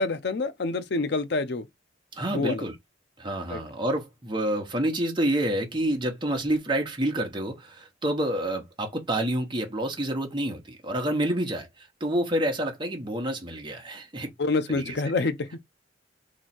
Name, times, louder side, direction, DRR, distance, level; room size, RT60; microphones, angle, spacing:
voice 1, 0.0-1.7 2.3-2.6 3.5-3.6 14.4-15.6, left 3 dB, 60° left, 0.5 m, -27 dB
voice 2, 2.1-2.7 3.2-14.3 14.7-15.0, right 1 dB, 25° right, 1.1 m, -28 dB
3.0 x 2.8 x 4.2 m
head